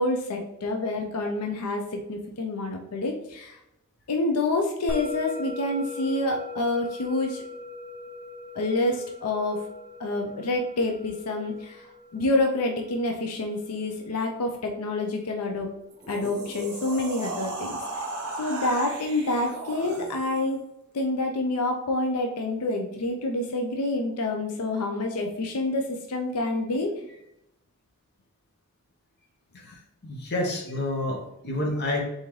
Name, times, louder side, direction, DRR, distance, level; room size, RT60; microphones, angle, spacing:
voice 1, 0.0-3.6 4.1-7.4 8.5-9.6 10.0-11.9 12.1-15.7 16.1-18.0 18.4-20.6 20.9-26.9, left 2 dB, 90° left, 3 dB, 0.6 m, -27 dB
Musical instrument, 4.9-15.5, left 2 dB, 5° right, 0.3 m, -41 dB
sound 1, 15.9-20.5, right 2 dB, 50° right, 0.9 m, -35 dB
voice 2, 29.5-32.0, left 1 dB, 45° left, 0 dB, 1.0 m, -29 dB
4.0 x 3.7 x 3.1 m, 0.84 s
head